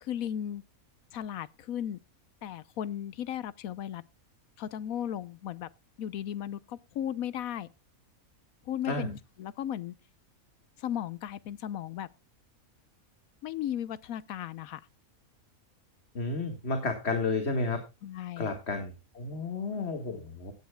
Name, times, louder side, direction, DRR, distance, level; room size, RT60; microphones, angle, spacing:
voice 1, 0.0-0.6 1.1-2.0 2.4-4.0 4.6-5.7 6.0-7.7 8.7-9.9 10.8-12.1 13.4-14.8 18.0-18.5, left 10 dB, 75° left, 1.2 m, -36 dB
voice 2, 16.1-17.8 18.4-20.5, left 3 dB, 50° left, 1.9 m, -32 dB
16.5 x 10.5 x 2.2 m
omnidirectional pair, 1.5 m